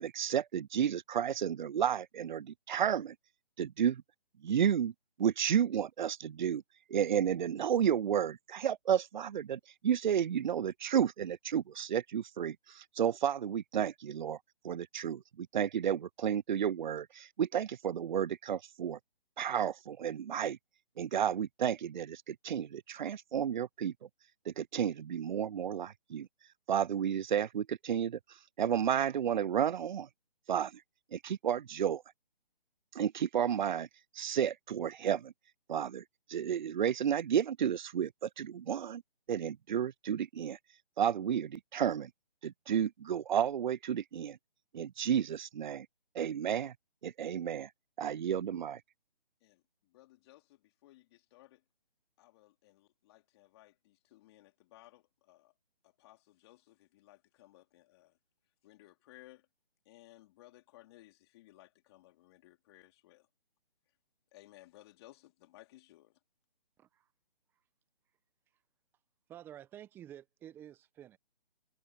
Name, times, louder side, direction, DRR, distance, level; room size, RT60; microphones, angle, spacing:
voice 1, 0.0-3.1 3.6-4.0 4.4-4.9 5.2-6.6 6.9-14.4 14.6-19.0 19.4-20.6 21.0-23.9 24.5-26.3 26.7-28.2 28.6-30.1 30.5-30.8 31.1-32.0 32.9-33.9 34.2-35.3 35.7-36.0 36.3-39.0 39.3-40.6 41.0-42.1 42.4-44.4 44.7-45.9 46.1-46.7 47.0-47.7 48.0-48.8, right 9 dB, 55° right, 0.5 m, -32 dB
voice 2, 49.4-51.6 52.2-55.5 55.8-58.2 58.6-59.5 59.8-63.3 64.3-66.2, left 17 dB, 25° left, 2.7 m, -60 dB
voice 3, 69.3-71.2, right 11 dB, 5° right, 0.8 m, -50 dB
figure-of-eight pair, 150°, 29 cm